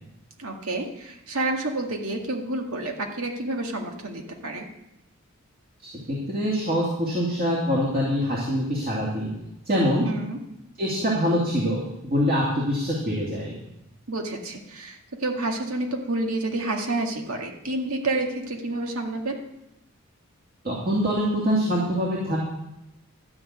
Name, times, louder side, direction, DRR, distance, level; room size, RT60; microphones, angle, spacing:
voice 1, 0.4-4.7 10.1-10.4 14.1-19.3, right 2 dB, 90° right, 2 dB, 1.9 m, -29 dB
voice 2, 6.3-9.3 9.7-10.0 10.8-13.5 20.6-22.4, equal, 40° right, -5 dB, 2.6 m, -24 dB
12.5 x 6.0 x 8.6 m, 0.86 s
head